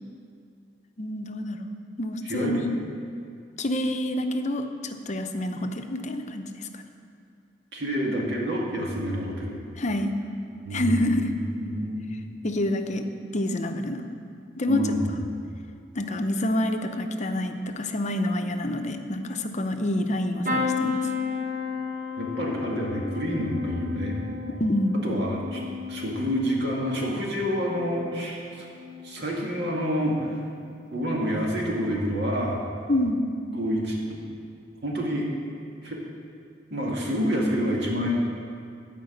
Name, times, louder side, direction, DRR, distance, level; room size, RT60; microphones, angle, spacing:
voice 1, 1.0-1.7 2.0-2.7 3.6-6.8 9.8-10.1 10.7-11.3 12.4-13.1 13.3-14.0 14.6-14.9 15.9-21.0 24.6-25.0 32.9-33.2, left 1 dB, 40° left, 6 dB, 0.7 m, -27 dB
voice 2, 2.2-2.6 7.7-9.6 10.6-12.2 14.7-15.2 22.2-24.3 25.0-25.6 25.9-28.7 29.0-30.4 30.9-32.6 33.5-34.2 34.8-35.3 35.8-36.0 36.7-38.1, equal, 65° right, -2 dB, 2.1 m, -28 dB
sound 1, 20.4-28.3 28.7-29.3 30.5-30.7 31.0-31.1, left 5 dB, 50° right, 1.1 m, -33 dB
13.0 x 5.2 x 7.8 m, 2.4 s
head